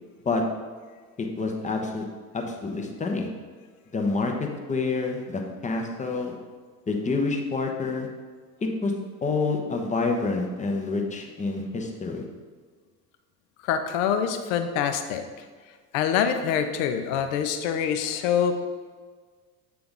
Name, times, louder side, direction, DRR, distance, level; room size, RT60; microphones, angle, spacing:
voice 1, 1.2-2.1 2.3-3.3 3.9-4.3 4.7-6.3 6.9-8.1 8.8-8.9 9.2-12.2, left 3 dB, 15° left, 2 dB, 0.7 m, -27 dB
voice 2, 13.7-15.2 15.9-18.6, left 8 dB, 55° left, 8 dB, 0.7 m, -25 dB
7.7 x 3.4 x 3.8 m, 1.5 s
figure-of-eight pair, 70°, 49 cm